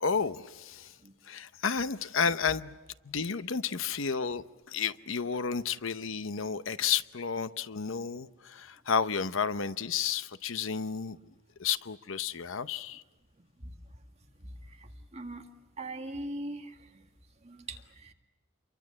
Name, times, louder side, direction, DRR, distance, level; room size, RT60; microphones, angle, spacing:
voice 1, 0.0-1.0 1.3-2.8 3.0-11.2 11.6-13.0, left 6 dB, 70° left, 0.8 m, -31 dB
voice 2, 15.1-15.4 15.8-16.7 17.4-18.1, right 1 dB, 30° right, 1.9 m, -39 dB
28.0 x 23.5 x 7.5 m
head